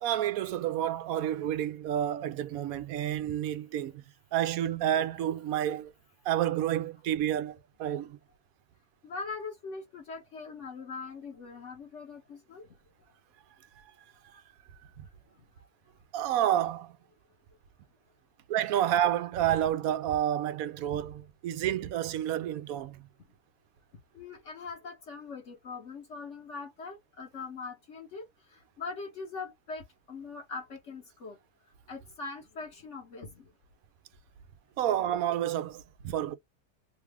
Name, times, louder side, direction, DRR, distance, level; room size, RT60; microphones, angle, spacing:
voice 1, 0.0-4.0 4.3-5.9 6.2-8.2 15.0-15.1 16.1-16.9 18.5-23.0 34.8-36.3, right 11 dB, 70° right, 0.9 m, -29 dB
voice 2, 9.0-12.8 15.4-15.7 24.1-31.4 31.9-33.5, left 4 dB, 55° left, 1.1 m, -42 dB
3.0 x 2.3 x 3.3 m
omnidirectional pair, 1.6 m